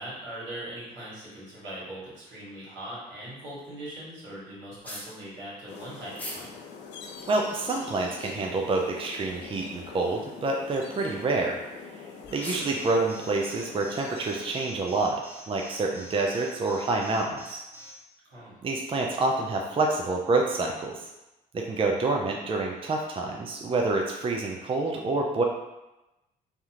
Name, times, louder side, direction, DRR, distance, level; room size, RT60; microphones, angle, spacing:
voice 1, 0.0-6.6 18.2-18.5, right 1 dB, 75° right, -7 dB, 1.4 m, -40 dB
sound 1, 4.8-5.1 6.1-6.4 7.0-7.1 7.9-8.5 9.2-9.5 9.8-9.9 10.6-10.8 11.8-11.9 12.2-12.8, equal, 10° left, 0.9 m, -40 dB
sound 2, 5.7-14.5, left 5 dB, 65° left, 0.5 m, -44 dB
voice 2, 7.3-11.6 12.3-15.2 15.5-17.6 18.6-21.1 21.5-25.4, right 3 dB, 30° right, 0 dB, 0.4 m, -27 dB
Alarm, 12.4-17.9, equal, 10° right, 1.1 m, -46 dB
3.3 x 2.4 x 2.8 m, 0.98 s
supercardioid pair, 60°, 19 cm